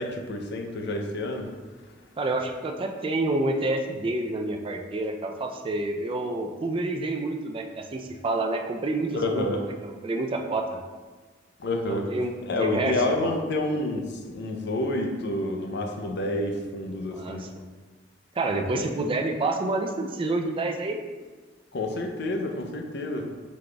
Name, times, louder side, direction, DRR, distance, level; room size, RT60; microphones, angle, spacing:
voice 1, 0.0-1.5 9.1-9.6 11.6-12.1 12.5-17.5 18.7-18.8 21.7-23.3, left 2 dB, 65° left, 3 dB, 0.5 m, -29 dB
voice 2, 2.2-10.8 11.9-13.3 17.2-17.5 18.4-21.0, right 2 dB, 30° right, 3 dB, 0.4 m, -28 dB
4.8 x 4.0 x 2.3 m, 1.4 s
head